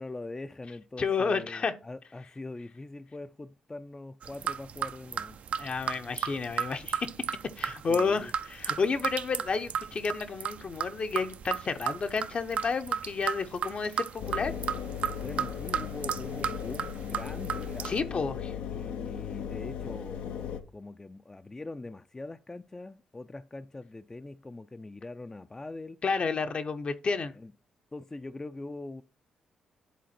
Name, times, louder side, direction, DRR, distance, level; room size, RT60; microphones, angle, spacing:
voice 1, 0.0-5.4 7.9-8.3 15.1-18.2 18.7-26.0 27.4-27.5 27.9-29.0, left 2 dB, 20° left, 0.4 m, -42 dB
voice 2, 1.0-1.7 5.6-7.1 7.6-14.5 17.8-18.5 26.0-27.3, left 5 dB, 50° left, 0.8 m, -31 dB
sound 1, 4.2-18.0, right 8 dB, 65° right, 0.5 m, -35 dB
Engine, 14.2-20.6, left 8 dB, 80° left, 0.7 m, -37 dB
10.5 x 3.9 x 4.3 m
supercardioid pair, 55°, 3 cm